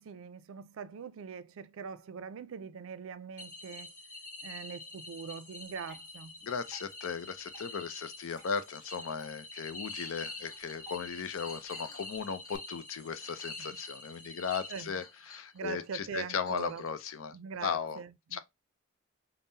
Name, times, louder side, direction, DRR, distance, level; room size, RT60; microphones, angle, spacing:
voice 1, 0.0-3.9 4.4-6.4 13.6-13.7 14.7-15.0 15.5-16.8 17.3-18.4, right 6 dB, 85° right, 0.4 m, -42 dB
sound 1, 3.4-15.3, left 2 dB, 40° left, 1.2 m, -46 dB
Water / Drip, 5.6-12.6, right 2 dB, 15° right, 1.5 m, -59 dB
voice 2, 6.4-17.4 17.6-18.0 18.3-18.4, left 6 dB, 85° left, 0.5 m, -37 dB
Chink clink, 10.3-10.9 11.2-14.3 15.0-15.9 16.2-17.2, left 4 dB, 20° left, 0.4 m, -55 dB
5.4 x 2.0 x 2.6 m
head